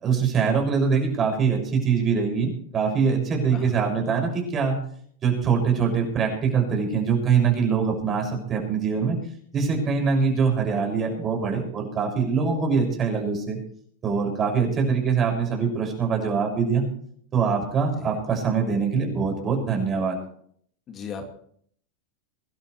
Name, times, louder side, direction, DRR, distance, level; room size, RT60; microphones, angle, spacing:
voice 1, 0.0-4.8 5.2-9.2 9.5-13.6 14.0-16.8 17.3-20.2, right 6 dB, 30° right, 2 dB, 6.4 m, -23 dB
voice 2, 3.5-3.9 18.0-18.2 20.9-21.3, left 5 dB, 35° left, 4 dB, 2.3 m, -38 dB
24.0 x 12.5 x 3.3 m, 0.63 s
hypercardioid pair, 110°, 0 cm